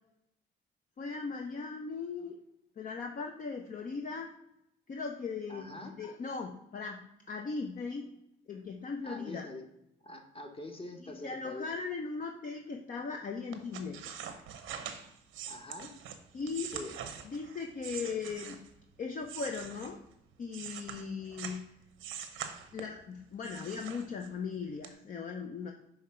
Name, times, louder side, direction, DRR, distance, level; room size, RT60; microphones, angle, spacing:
voice 1, 1.0-2.4 2.8-4.3 4.9-8.1 8.5-9.5 11.0-14.1 16.3-16.7 17.2-18.6 19.0-20.0 20.4-21.7 22.7-25.7, left 5 dB, 45° left, 3 dB, 0.6 m, -38 dB
voice 2, 5.5-6.0 9.0-9.6 10.0-11.7 15.5-15.9 16.7-16.9 18.0-18.3, left 2 dB, 30° left, 4 dB, 1.1 m, -44 dB
sound 1, 13.5-18.8 19.2-21.6 22.0-23.0 23.4-24.5 24.8-24.9, right 8 dB, 90° right, 0.8 m, -43 dB
5.7 x 3.2 x 5.7 m, 0.79 s
cardioid pair, 90°, 20 cm